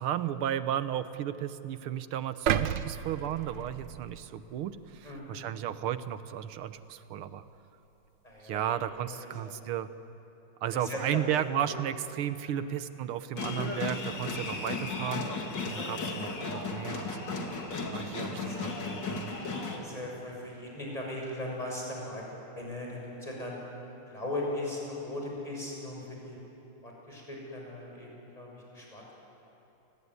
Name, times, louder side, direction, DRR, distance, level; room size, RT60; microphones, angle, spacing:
voice 1, 0.0-7.4 8.4-9.9 10.6-15.2 15.7-17.4 17.9-19.3, right 10 dB, 85° right, 12 dB, 1.8 m, -34 dB
sound 1, 2.5-4.6 5.1-5.2, right 9 dB, 65° right, 1.3 m, -32 dB
voice 2, 5.0-5.4 8.2-8.8 9.2-9.6 10.7-11.7 12.4-12.7 18.1-18.7 19.7-22.3 22.6-23.6 24.1-26.4 26.8-29.1, left 1 dB, 15° left, -2 dB, 7.1 m, -39 dB
sound 2, 13.4-19.8, left 3 dB, 55° left, 3.0 m, -35 dB
29.0 x 20.0 x 9.7 m, 3.0 s
omnidirectional pair, 2.3 m